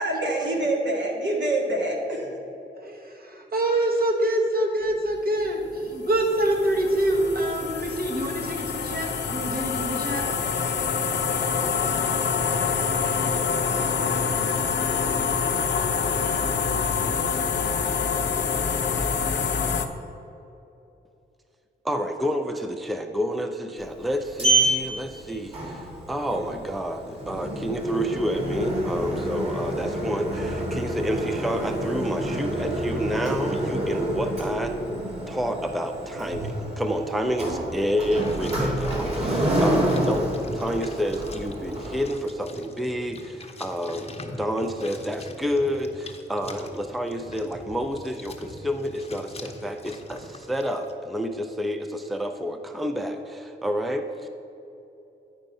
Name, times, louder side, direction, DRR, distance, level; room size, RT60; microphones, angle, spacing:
voice 1, 0.0-2.3, right 1 dB, 70° right, -1 dB, 1.7 m, -25 dB
voice 2, 2.8-10.3, right 1 dB, 50° right, 1 dB, 1.5 m, -25 dB
sound 1, 5.4-19.9, left 6 dB, 65° left, 0.6 m, -26 dB
voice 3, 21.8-34.7 35.3-54.3, equal, ahead, 6 dB, 0.5 m, -29 dB
Sliding door, 23.8-42.1, right 1 dB, 30° right, 2.0 m, -28 dB
sound 2, 37.9-50.9, left 2 dB, 30° left, 0.8 m, -42 dB
10.0 x 4.5 x 5.4 m, 2.9 s
cardioid pair, 75°, 19 cm